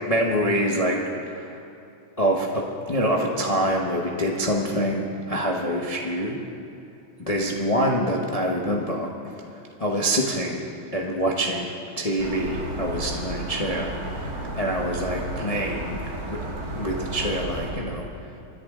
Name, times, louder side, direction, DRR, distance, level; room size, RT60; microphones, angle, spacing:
voice 1, 0.1-1.0 1.2-1.6 2.2-6.4 7.3-9.1 9.8-10.6 10.9-16.0 16.3-16.4 16.7-18.1, equal, 30° left, -1 dB, 0.7 m, -25 dB
sound 1, 12.2-17.7, right 1 dB, 45° right, 2.3 m, -32 dB
26.0 x 10.5 x 3.7 m, 2.7 s
omnidirectional pair, 2.3 m